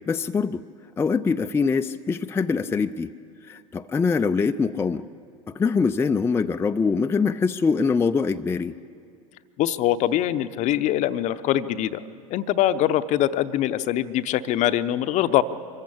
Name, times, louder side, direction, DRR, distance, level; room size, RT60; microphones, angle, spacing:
voice 1, 0.1-0.6 1.0-3.1 3.5-5.0 5.5-8.8, left 5 dB, 15° left, 7 dB, 0.5 m, -23 dB
voice 2, 9.6-12.0 12.3-15.4, left 12 dB, 45° left, 13 dB, 0.8 m, -23 dB
24.0 x 14.5 x 8.6 m, 2.3 s
figure-of-eight pair, 75°, 18 cm